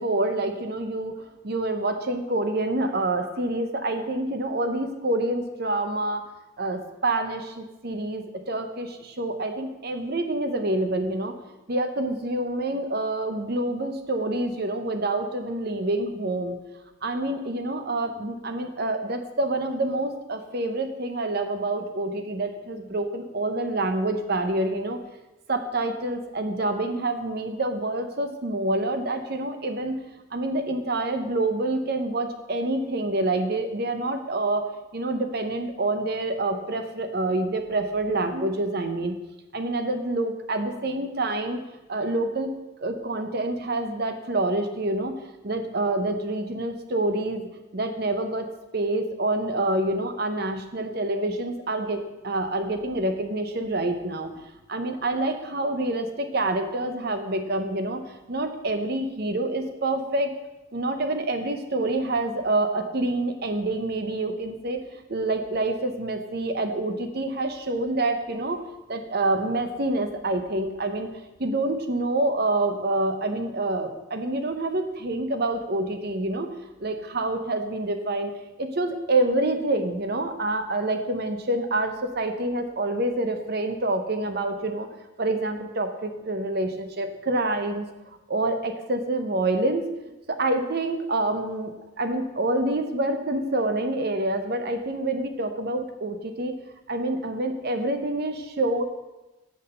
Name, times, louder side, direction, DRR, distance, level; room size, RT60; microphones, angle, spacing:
voice 1, 0.0-6.2 6.6-11.3 11.7-16.6 17.0-25.0 25.5-30.0 30.3-39.2 39.5-41.6 41.9-42.5 42.8-45.1 45.4-48.5 48.7-54.3 54.7-60.3 60.7-68.6 68.9-71.1 71.4-76.5 76.8-78.3 78.6-84.9 85.2-87.9 88.3-89.9 90.3-96.5 96.9-98.8, right 2 dB, 50° right, 7 dB, 0.8 m, -27 dB
6.3 x 5.6 x 6.7 m, 1.0 s
head